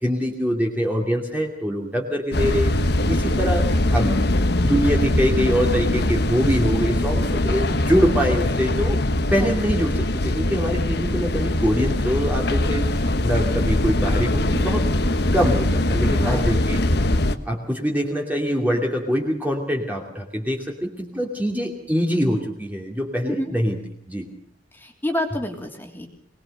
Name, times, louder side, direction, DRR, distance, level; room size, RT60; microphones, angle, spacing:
voice 1, 0.0-2.7 3.1-4.2 4.6-9.0 9.3-12.9 13.2-14.9 15.3-16.8 17.4-23.8 24.1-24.3, equal, 10° right, 0 dB, 2.6 m, -24 dB
sound 1, 2.3-17.4, left 1 dB, 55° left, 1.3 m, -22 dB
voice 2, 16.1-16.5 23.3-23.5 24.7-26.1, left 1 dB, 10° left, 2 dB, 3.0 m, -28 dB
24.0 x 20.0 x 6.7 m, 0.62 s
head